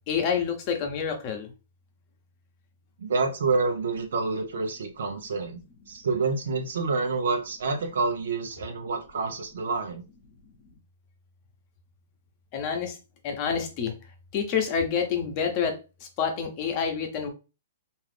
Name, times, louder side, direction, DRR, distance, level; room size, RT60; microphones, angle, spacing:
voice 1, 0.1-1.5 12.5-13.0 13.2-13.9 14.3-15.8 16.2-17.3, left 6 dB, 40° left, 4 dB, 0.9 m, -27 dB
voice 2, 3.0-5.6 5.9-10.0, right 4 dB, 75° right, 5 dB, 0.7 m, -28 dB
2.6 x 2.4 x 3.3 m, 0.30 s
hypercardioid pair, 135°, 0 cm